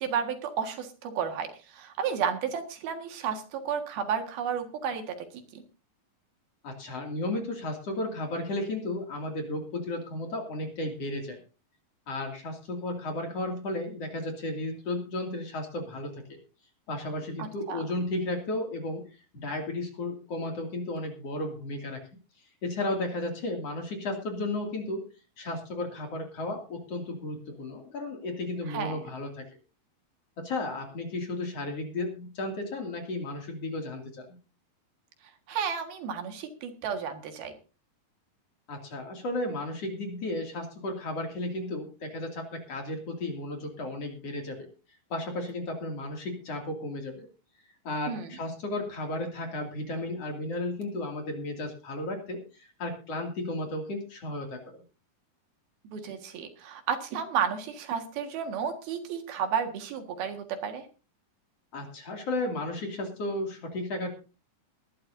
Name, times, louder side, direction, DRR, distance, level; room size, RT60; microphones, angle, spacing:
voice 1, 0.0-5.3 5.5-5.6 17.4-17.8 28.7-29.0 35.5-37.5 48.1-48.3 55.9-60.9, right 7 dB, 80° right, 6 dB, 3.6 m, -32 dB
voice 2, 6.6-11.4 12.1-16.4 16.9-19.0 19.3-22.0 22.6-25.0 25.4-29.5 30.4-34.3 38.7-44.7 45.1-47.3 47.8-54.8 61.7-64.1, left 2 dB, 45° left, 3 dB, 3.2 m, -34 dB
21.5 x 11.5 x 2.7 m, 0.34 s
omnidirectional pair, 4.3 m